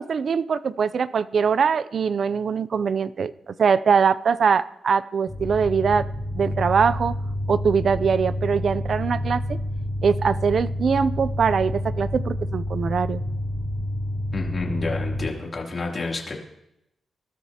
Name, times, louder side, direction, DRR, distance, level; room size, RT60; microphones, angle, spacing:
voice 1, 0.0-6.1 6.3-7.2 7.5-9.6 10.0-13.2, right 6 dB, 55° right, 16 dB, 0.5 m, -22 dB
sound 1, 5.3-15.3, left 1 dB, 25° right, 5.8 m, -28 dB
voice 2, 14.3-16.3, left 3 dB, 35° left, -1 dB, 3.0 m, -29 dB
27.0 x 13.5 x 2.9 m, 0.82 s
wide cardioid pair, 120°, 0 cm